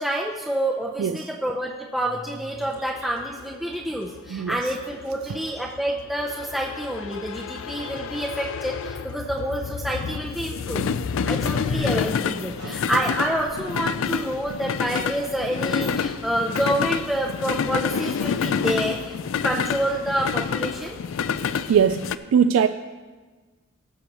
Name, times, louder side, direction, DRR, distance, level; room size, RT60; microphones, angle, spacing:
voice 1, 0.0-10.9 11.2-19.1 19.4-21.0, right 1 dB, ahead, -3 dB, 0.6 m, -28 dB
sound 1, 2.6-22.2, left 6 dB, 65° left, 0.4 m, -28 dB
voice 2, 21.7-22.7, right 7 dB, 70° right, 9 dB, 0.3 m, -21 dB
18.0 x 7.0 x 3.0 m, 1.3 s
head